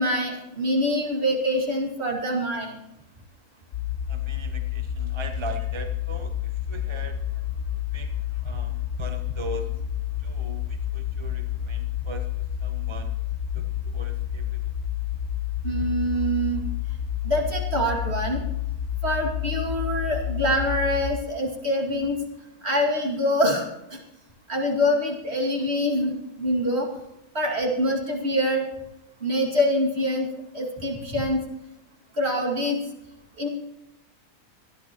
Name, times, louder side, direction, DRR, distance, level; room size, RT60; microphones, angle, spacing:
voice 1, 0.0-2.8 15.6-16.6 17.2-18.4 19.0-22.2 22.6-23.7 23.9-24.0 24.5-26.9 27.3-28.7 29.2-30.3 30.5-31.4 32.2-32.8 33.4-33.5, equal, 45° right, -1 dB, 2.7 m, -25 dB
sound 1, 3.7-21.2, left 10 dB, 55° left, 0.9 m, -29 dB
voice 2, 4.1-7.2 7.9-8.1 8.4-9.7 10.2-12.3 12.6-13.1 13.5-14.7 32.5-32.6, right 3 dB, 25° right, 6 dB, 0.8 m, -40 dB
25.0 x 10.5 x 3.0 m, 0.87 s
omnidirectional pair, 1.6 m